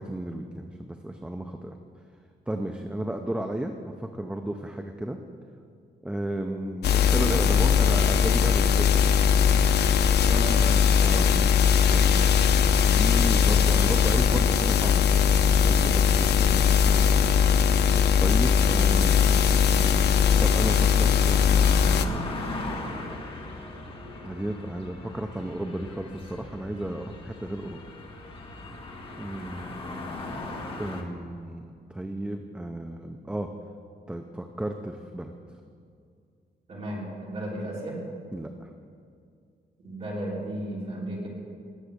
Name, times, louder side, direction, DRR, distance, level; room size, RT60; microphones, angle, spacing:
voice 1, 0.0-1.8 2.5-5.2 6.0-9.2 11.0-17.3 18.2-22.3 24.2-27.8 29.2-29.7 30.8-33.5 34.1-35.3 38.3-38.7, right 1 dB, 5° right, 5 dB, 0.5 m, -34 dB
sound 1, 6.8-22.1, left 7 dB, 70° left, 0.7 m, -20 dB
voice 2, 10.2-10.8 36.7-38.0 39.8-41.3, right 1 dB, 35° right, -5 dB, 3.4 m, -34 dB
sound 2, 15.7-31.0, left 2 dB, 30° left, 1.5 m, -40 dB
19.5 x 7.4 x 6.7 m, 2.3 s
wide cardioid pair, 175°, 18 cm